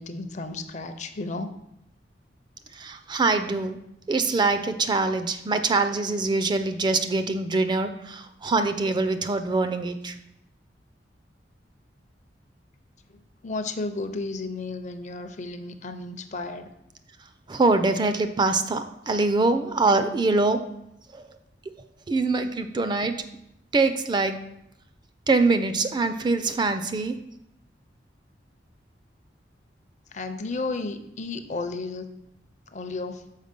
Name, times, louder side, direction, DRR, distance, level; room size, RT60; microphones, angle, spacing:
voice 1, 0.0-1.5 13.1-16.7 30.1-32.1 32.7-33.2, left 3 dB, 40° left, 8 dB, 0.6 m, -33 dB
voice 2, 2.7-3.8 4.1-10.2 17.5-20.6 21.1-21.3 22.1-23.2 23.7-24.4 25.3-27.2, right 3 dB, 25° right, 9 dB, 0.4 m, -24 dB
6.5 x 4.7 x 5.2 m, 0.81 s
head